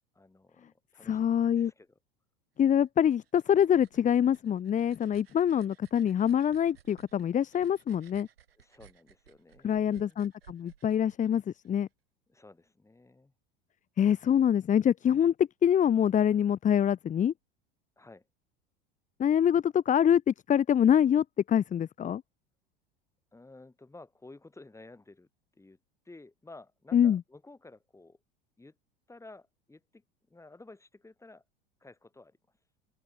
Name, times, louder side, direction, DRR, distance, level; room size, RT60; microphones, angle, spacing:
voice 1, 0.1-2.0 8.5-10.3 12.3-13.3 18.0-18.3 23.3-25.8 26.0-28.2 28.6-28.8 29.1-31.4 31.8-32.4, left 2 dB, 10° left, 7.7 m, -53 dB
voice 2, 1.1-1.7 2.6-8.3 9.6-11.9 14.0-17.3 19.2-22.2 26.9-27.2, left 9 dB, 25° left, 1.1 m, -25 dB
sound 1, 2.9-11.8, right 9 dB, 75° right, 6.1 m, -59 dB
open air
figure-of-eight pair, 80°, 30 cm